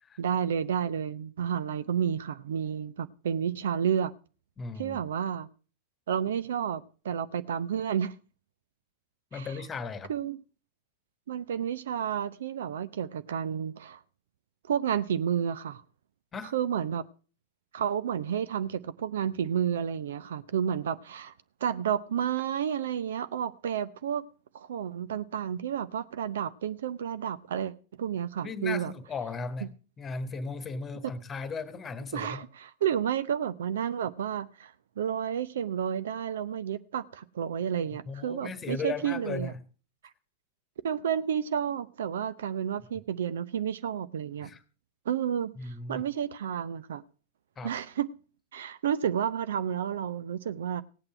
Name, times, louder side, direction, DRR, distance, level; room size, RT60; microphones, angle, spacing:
voice 1, 0.2-4.1 4.8-5.5 6.1-8.1 9.3-9.5 10.1-10.4 11.3-14.0 14.7-15.8 16.4-17.0 17.7-21.3 21.6-24.2 24.5-28.9 31.0-31.1 32.1-39.5 40.8-44.5 45.1-47.0 47.6-48.1 48.5-50.8, right 8 dB, 60° right, 0.6 m, -31 dB
voice 2, 4.6-5.0 9.3-10.1 16.3-16.5 28.4-29.7 30.0-32.4 38.1-39.6 44.4-44.6 45.6-46.1 47.6-47.7, left 4 dB, 20° left, 1.4 m, -36 dB
17.5 x 8.7 x 4.5 m
figure-of-eight pair, 90°, 0 cm